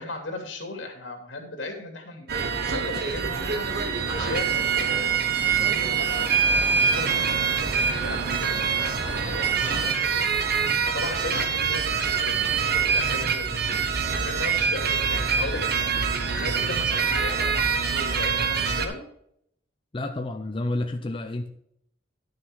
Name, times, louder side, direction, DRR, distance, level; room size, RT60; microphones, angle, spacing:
voice 1, 0.0-15.9 16.3-19.0, left 2 dB, 80° left, 2.8 m, -37 dB
sound 1, 2.3-18.9, right 6 dB, 60° right, 1.2 m, -25 dB
sound 2, 3.6-10.8, right 4 dB, 25° right, 0.6 m, -40 dB
voice 2, 19.9-21.5, left 2 dB, 30° left, 0.6 m, -30 dB
11.0 x 6.6 x 4.8 m
head